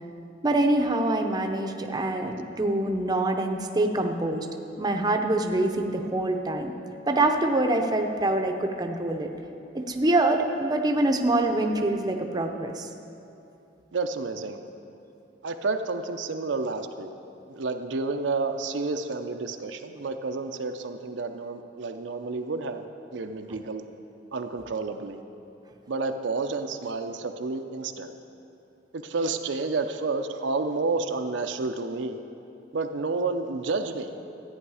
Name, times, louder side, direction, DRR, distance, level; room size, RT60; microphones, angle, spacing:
voice 1, 0.4-4.5 4.8-6.8 7.1-9.3 9.7-12.9 23.5-23.6, right 2 dB, 20° right, 4 dB, 0.6 m, -25 dB
voice 2, 13.9-14.6 15.4-17.1 17.5-22.8 23.1-23.8 24.3-25.2 25.9-28.1 28.9-32.2 32.7-34.1, right 3 dB, 80° right, 6 dB, 0.6 m, -30 dB
14.0 x 8.9 x 4.9 m, 2.8 s
head